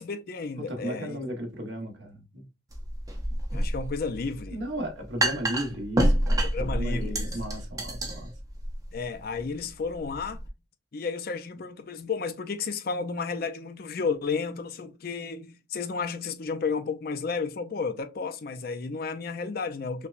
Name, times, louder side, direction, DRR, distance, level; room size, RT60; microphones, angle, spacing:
voice 1, 0.0-1.2 3.5-4.6 6.4-7.3 8.9-10.4 10.9-20.1, left 4 dB, 50° left, 0.4 m, -32 dB
voice 2, 0.7-2.4 4.5-8.3, right 1 dB, 70° right, 1.1 m, -35 dB
sound 1, 2.7-10.5, right 1 dB, 20° right, 0.6 m, -29 dB
5.5 x 2.2 x 2.4 m
head